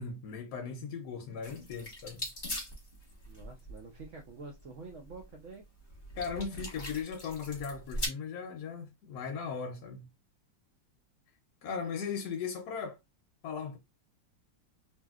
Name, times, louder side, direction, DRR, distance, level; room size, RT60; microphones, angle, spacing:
voice 1, 0.0-2.3 6.1-10.1 11.6-13.0 13.4-13.8, left 6 dB, 70° left, 1.0 m, -38 dB
sound 1, 1.4-8.1, left 1 dB, 35° left, 0.9 m, -41 dB
voice 2, 3.3-5.6, right 4 dB, 75° right, 0.6 m, -47 dB
2.9 x 2.7 x 2.3 m
omnidirectional pair, 2.0 m